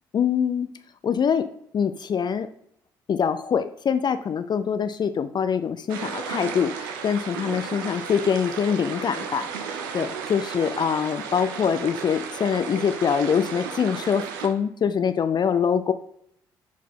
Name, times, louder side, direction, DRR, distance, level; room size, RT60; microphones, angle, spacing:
voice 1, 0.1-0.7 1.0-1.5 1.7-2.5 3.1-15.9, left 7 dB, 45° left, 11 dB, 0.5 m, -24 dB
sound 1, 5.9-14.5, right 6 dB, 85° right, 0.7 m, -34 dB
9.3 x 4.6 x 3.7 m, 0.71 s
hypercardioid pair, 50°, 11 cm